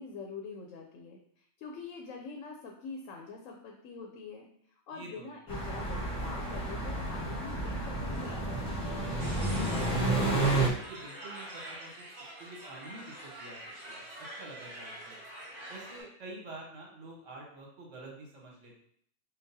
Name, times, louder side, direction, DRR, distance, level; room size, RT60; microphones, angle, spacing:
voice 1, 0.0-9.1, left 4 dB, 90° left, 2 dB, 1.0 m, -45 dB
voice 2, 4.9-5.3 9.6-12.1 12.4-15.2 15.7-18.7, right 2 dB, 70° right, -2 dB, 1.3 m, -48 dB
sound 1, 5.5-10.7, right 2 dB, 25° left, 0.9 m, -31 dB
sound 2, 9.2-16.0, right 1 dB, 55° right, 1.9 m, -46 dB
5.7 x 2.3 x 2.7 m, 0.65 s
omnidirectional pair, 1.3 m